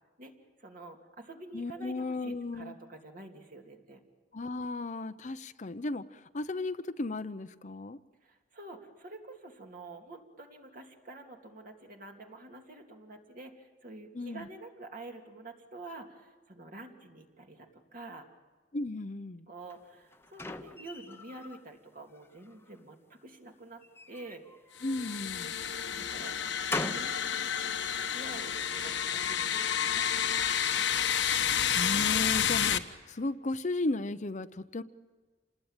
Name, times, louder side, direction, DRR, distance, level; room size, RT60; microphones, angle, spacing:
voice 1, 0.6-4.0 8.2-18.3 19.5-24.4 25.8-26.3 26.8-27.5 28.1-30.9, right 2 dB, 50° right, 3 dB, 2.8 m, -48 dB
voice 2, 1.5-2.8 4.3-8.0 14.1-14.5 18.7-19.4 24.8-25.5 31.7-34.8, left 2 dB, 40° left, 11 dB, 0.7 m, -35 dB
sound 1, 19.7-21.6 22.1-22.8 23.8-25.3 25.9-27.2, left 2 dB, 15° left, 1.0 m, -41 dB
sound 2, 24.8-32.8, left 8 dB, 80° left, 1.3 m, -30 dB
28.0 x 20.0 x 9.0 m, 1.4 s
head